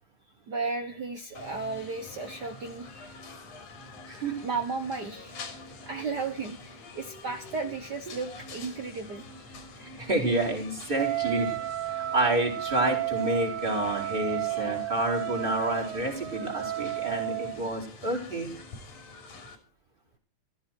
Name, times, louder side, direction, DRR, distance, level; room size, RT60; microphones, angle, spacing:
voice 1, 0.5-2.9 4.4-5.5 5.8-9.3, right 4 dB, 55° right, 7 dB, 1.2 m, -34 dB
sound 1, 1.3-19.6, left 3 dB, 90° left, 4.4 m, -46 dB
voice 2, 9.8-11.6 11.8-18.5, right 2 dB, 15° right, -1 dB, 4.5 m, -29 dB
Wind instrument woodwind instrument, 11.0-17.6, right 15 dB, 90° right, 2.5 m, -32 dB
15.0 x 14.5 x 4.5 m, 0.35 s
omnidirectional pair, 3.4 m